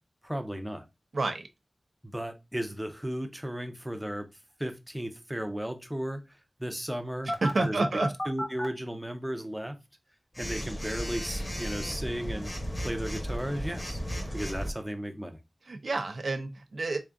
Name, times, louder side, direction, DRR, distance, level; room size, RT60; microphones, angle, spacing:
voice 1, 0.2-0.9 2.0-4.3 4.6-7.3 7.6-7.9 8.3-9.8 10.4-12.5 12.8-14.0 14.3-15.4, equal, 5° right, 0.6 m, -35 dB
voice 2, 1.1-1.5 7.3-8.1 15.7-17.0, right 3 dB, 75° right, 0.6 m, -29 dB
Telephone, 7.3-8.6 10.3-14.7, equal, 25° left, 0.9 m, -34 dB
3.6 x 3.4 x 2.5 m
wide cardioid pair, 80°, 0 cm